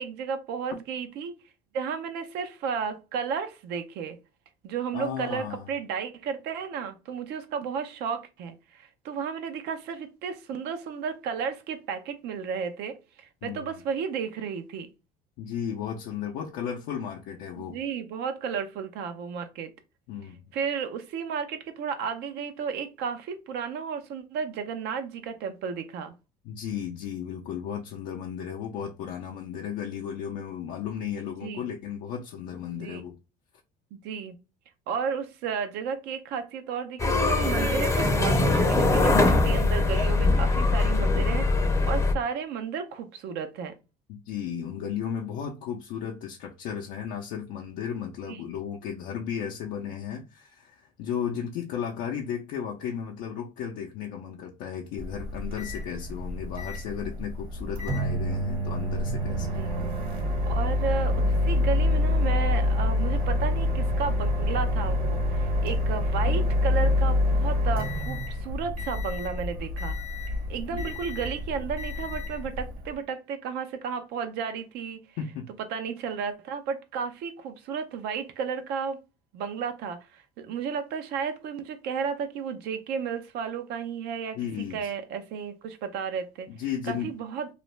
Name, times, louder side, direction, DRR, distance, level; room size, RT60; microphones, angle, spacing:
voice 1, 0.0-1.4 1.7-4.2 4.6-14.9 17.6-19.7 20.5-26.1 31.4-31.7 32.8-33.0 33.9-34.3 34.9-43.7 48.3-48.4 59.4-59.7 60.5-70.0 70.5-75.0 75.7-79.0 79.3-84.4 84.7-86.5 86.8-87.5, right 6 dB, 75° right, 0.6 m, -33 dB
voice 2, 4.9-5.7 13.4-13.8 15.4-17.8 20.1-20.4 26.4-33.2 44.1-60.3 70.7-70.9 75.2-75.5 84.3-84.9 86.5-87.1, left 8 dB, 75° left, 0.5 m, -35 dB
sound 1, 37.0-42.1, left 2 dB, 15° left, 0.5 m, -22 dB
Microwave oven, 55.0-72.9, left 1 dB, 55° right, 1.2 m, -27 dB
2.5 x 2.1 x 3.1 m
supercardioid pair, 95°, 17 cm